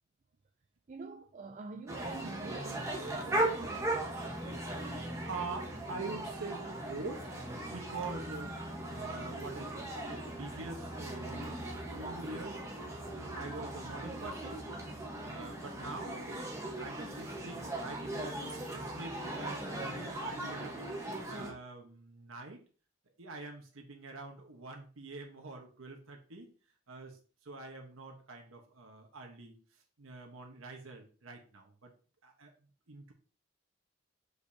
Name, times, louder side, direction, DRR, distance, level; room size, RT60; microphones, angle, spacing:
voice 1, 0.9-4.1, right 3 dB, 35° right, 0.4 m, -45 dB
sound 1, 1.9-21.5, right 1 dB, 15° right, 1.2 m, -38 dB
voice 2, 4.8-12.6 13.1-14.6 15.2-18.4 18.7-20.9 21.3-22.6 23.2-26.5 26.9-29.5 30.0-31.9 32.2-32.5 32.9-33.1, right 3 dB, 85° right, 1.2 m, -45 dB
6.5 x 5.2 x 2.8 m
head